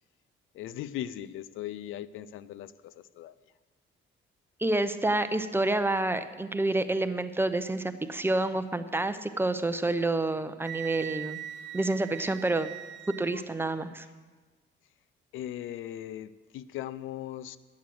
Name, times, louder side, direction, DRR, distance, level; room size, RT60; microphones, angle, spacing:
voice 1, 0.5-3.4 15.3-17.6, left 12 dB, 85° left, 17 dB, 0.5 m, -39 dB
voice 2, 4.6-11.4 11.7-12.7 13.2-14.0, right 2 dB, 10° right, 10 dB, 0.7 m, -28 dB
Wind instrument woodwind instrument, 10.6-13.4, right 12 dB, 65° right, 0.5 m, -41 dB
11.0 x 8.6 x 7.7 m, 1.3 s
cardioid pair, 90°, 20 cm